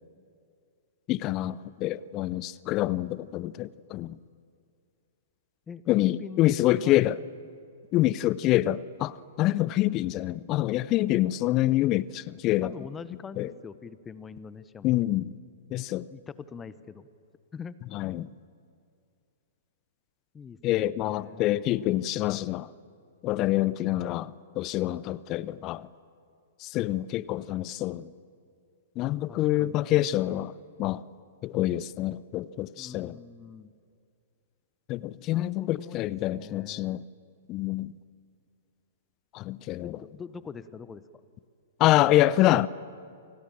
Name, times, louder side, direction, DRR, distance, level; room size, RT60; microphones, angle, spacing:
voice 1, 1.1-4.2 5.9-7.2 7.9-12.7 13.4-13.5 14.8-15.3 15.7-16.1 17.9-18.3 20.6-22.7 23.2-25.9 26.6-28.1 29.0-30.5 30.8-31.0 31.4-33.2 34.9-37.0 37.5-37.9 39.3-40.0 41.8-42.7, left 15 dB, 35° left, 0.7 m, -26 dB
voice 2, 5.7-6.5 6.8-7.1 12.6-15.4 16.1-17.1 17.5-17.8 18.0-18.4 20.3-21.5 29.3-29.8 30.2-30.3 32.8-33.7 35.3-37.0 39.8-41.1, left 6 dB, 15° left, 1.2 m, -43 dB
29.5 x 26.0 x 7.3 m
figure-of-eight pair, 110°, 0 cm